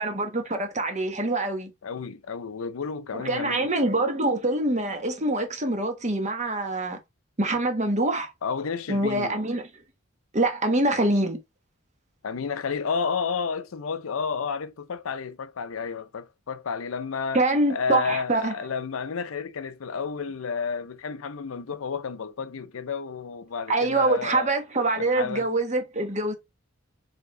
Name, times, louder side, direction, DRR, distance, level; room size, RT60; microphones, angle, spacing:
voice 1, 0.0-1.7 3.1-7.0 7.4-8.3 8.9-9.6 10.3-11.4 17.3-18.5 23.7-26.3, right 2 dB, 35° right, 1.2 m, -25 dB
voice 2, 1.8-3.7 8.4-9.4 12.2-17.4 17.7-24.5 25.0-25.5, left 5 dB, 85° left, 0.6 m, -31 dB
4.7 x 3.5 x 3.1 m
head